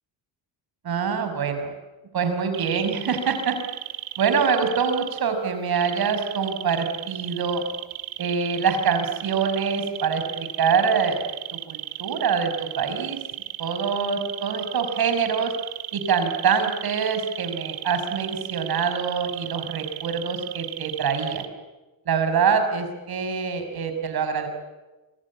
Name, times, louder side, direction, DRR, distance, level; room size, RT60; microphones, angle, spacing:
voice 1, 0.8-1.7 2.1-3.6 4.2-7.6 8.2-13.2 13.6-15.5 15.9-21.5 22.1-24.5, right 6 dB, 50° right, 7 dB, 5.7 m, -25 dB
sound 1, 2.5-5.2 5.8-21.5, right 15 dB, 90° right, 2.2 m, -35 dB
27.0 x 24.0 x 8.6 m, 1.1 s
cardioid pair, 115°, 47 cm